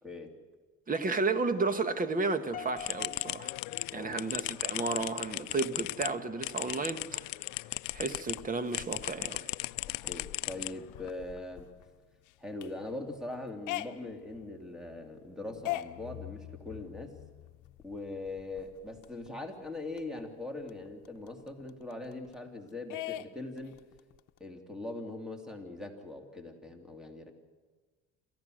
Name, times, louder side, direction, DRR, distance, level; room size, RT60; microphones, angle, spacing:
voice 1, 0.0-0.3 3.9-4.2 10.0-11.7 12.4-17.2 17.8-23.8 24.4-27.3, left 2 dB, ahead, 2.8 m, -41 dB
voice 2, 0.9-3.5 3.9-7.2 7.9-9.5, right 3 dB, 25° right, 1.6 m, -32 dB
Piano, 2.5-4.8, left 8 dB, 30° left, 1.7 m, -46 dB
sound 1, 2.8-8.4 8.7-11.1, left 23 dB, 85° left, 0.5 m, -37 dB
sound 2, 7.8-19.3 19.6-19.7 20.0-22.5 22.9-24.4, left 16 dB, 70° left, 0.9 m, -44 dB
28.0 x 15.0 x 6.5 m
cardioid pair, 115°, 32 cm